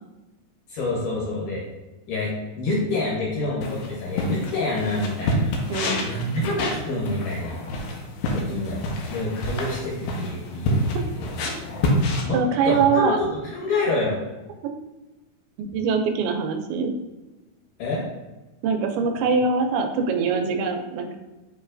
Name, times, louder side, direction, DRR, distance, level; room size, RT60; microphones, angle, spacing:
voice 1, 0.7-1.6 2.1-5.5 6.0-7.6 8.3-8.8 9.1-11.4 12.2-14.2 17.8-18.0, left 2 dB, 65° left, -5 dB, 2.3 m, -27 dB
sound 1, 3.6-12.2, left 1 dB, 85° left, 2.5 m, -27 dB
voice 2, 5.7-6.0 8.5-8.8 12.3-13.2 14.6-14.7 15.6-16.9 18.6-21.2, right 5 dB, 85° right, 5 dB, 2.4 m, -23 dB
6.8 x 3.1 x 2.5 m, 1.1 s
omnidirectional pair, 4.5 m